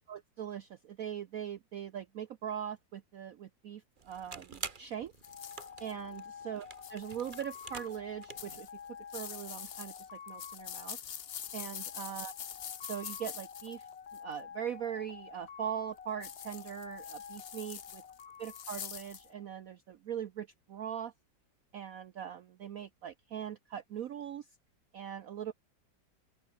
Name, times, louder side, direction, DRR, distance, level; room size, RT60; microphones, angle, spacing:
voice 1, 0.1-5.1 5.8-8.7 9.1-11.0 11.5-12.3 12.8-13.9 14.2-18.0 18.4-21.1 21.7-24.5 24.9-25.6, right 9 dB, 60° right, 1.0 m, -41 dB
sound 1, 4.0-8.6, right 4 dB, 30° right, 1.3 m, -48 dB
sound 2, 5.2-5.9 6.7-8.0 8.4-14.3 16.2-19.2, left 9 dB, 70° left, 0.5 m, -45 dB
sound 3, 5.2-19.7, left 7 dB, 40° left, 1.1 m, -50 dB
open air
omnidirectional pair, 2.0 m